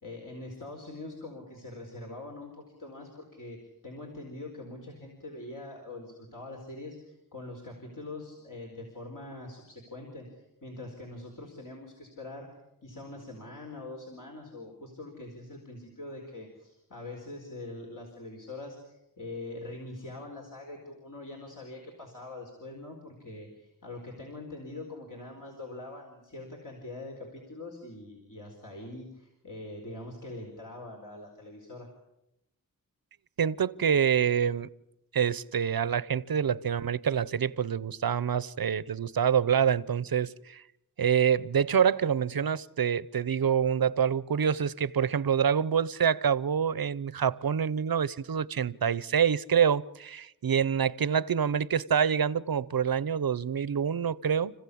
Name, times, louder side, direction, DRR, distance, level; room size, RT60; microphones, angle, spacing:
voice 1, 0.0-12.5 12.8-31.9, left 2 dB, 60° left, 4.6 m, -43 dB
voice 2, 33.4-34.7 35.1-40.6 41.0-54.5, right 7 dB, 80° right, 0.8 m, -26 dB
29.5 x 15.5 x 8.6 m
wide cardioid pair, 85°, 36 cm